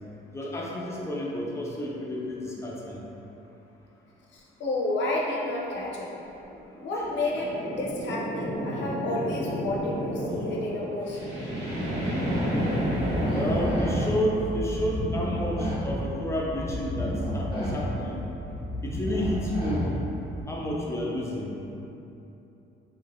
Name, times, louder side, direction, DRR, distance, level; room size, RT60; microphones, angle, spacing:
voice 1, 0.3-3.0 7.1-7.5 13.3-18.2 18.8-19.9 20.5-21.5, equal, 15° left, -3 dB, 0.5 m, -31 dB
voice 2, 4.3-6.1 6.8-11.4, left 2 dB, 65° left, -3 dB, 0.6 m, -31 dB
sound 1, 6.4-14.1, equal, 55° right, 1.2 m, -31 dB
sound 2, 12.7-20.4, equal, 25° right, 1.3 m, -31 dB
3.1 x 2.7 x 2.6 m, 2.9 s
cardioid pair, 90°, 20 cm